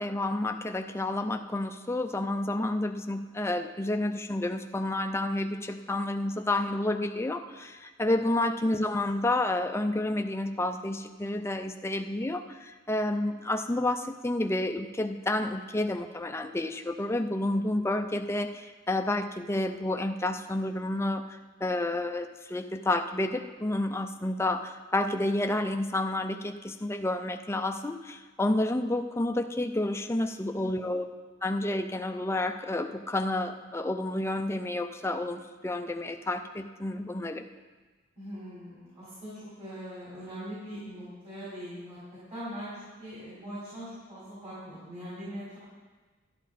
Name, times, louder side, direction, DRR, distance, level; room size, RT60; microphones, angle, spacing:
voice 1, 0.0-31.0 31.4-37.4, left 1 dB, 15° left, 6 dB, 0.5 m, -30 dB
voice 2, 30.4-31.0 38.2-42.0 42.3-45.6, equal, 35° right, -10 dB, 4.2 m, -42 dB
11.5 x 11.5 x 4.1 m, 1.3 s
head